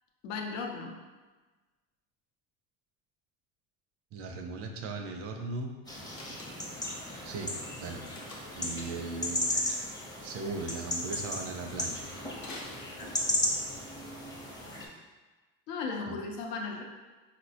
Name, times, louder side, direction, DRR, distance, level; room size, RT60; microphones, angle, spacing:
voice 1, 0.2-0.9 15.7-16.8, left 4 dB, 90° left, 1 dB, 0.6 m, -36 dB
voice 2, 4.1-5.7 6.6-6.8 7.2-8.0 8.5-9.5 10.2-12.1 16.1-16.2, right 3 dB, 40° right, 4 dB, 0.4 m, -38 dB
sound 1, 5.9-14.9, left 1 dB, 10° left, 0.5 m, -35 dB
Slam, 6.1-6.8 8.1-8.7 12.4-13.5, left 2 dB, 50° left, 0.7 m, -47 dB
4.0 x 2.1 x 2.7 m, 1.3 s
supercardioid pair, 105°, 37 cm